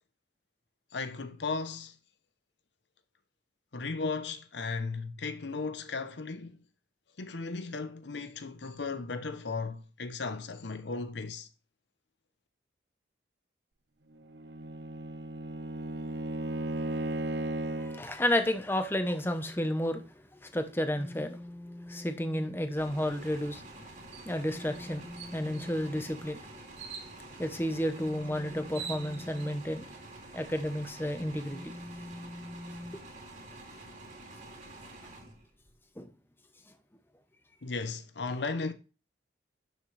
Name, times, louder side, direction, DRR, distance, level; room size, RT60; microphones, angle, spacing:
voice 1, 0.9-1.9 3.7-6.6 7.2-11.5 37.6-38.7, left 4 dB, 70° left, 0.8 m, -36 dB
Bowed string instrument, 14.2-18.1, right 1 dB, 70° right, 0.9 m, -35 dB
voice 2, 17.8-20.0 20.4-23.6 24.2-26.4 27.4-29.9 30.3-33.0 36.0-36.1, equal, 10° left, 0.9 m, -32 dB
sound 1, 22.8-35.8, right 2 dB, 40° right, 2.7 m, -49 dB
sound 2, 24.1-24.3 24.7-24.8 25.2-25.8 26.8-27.1 28.2-28.3 28.6-29.5, right 7 dB, 85° right, 1.8 m, -43 dB
12.0 x 6.6 x 3.3 m
head